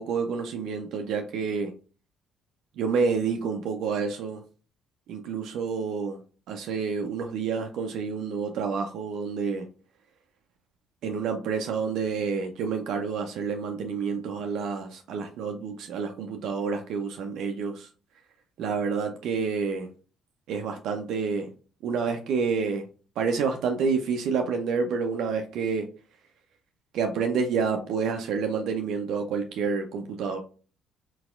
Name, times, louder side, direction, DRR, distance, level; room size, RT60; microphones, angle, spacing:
voice 1, 0.0-1.7 2.8-4.4 5.1-6.2 6.5-9.7 11.0-17.9 18.6-19.9 20.5-21.5 21.8-22.8 23.2-25.9 26.9-30.4, right 5 dB, 60° right, 4 dB, 0.5 m, -28 dB
4.1 x 4.0 x 2.4 m, 0.37 s
figure-of-eight pair, 50°, 0 cm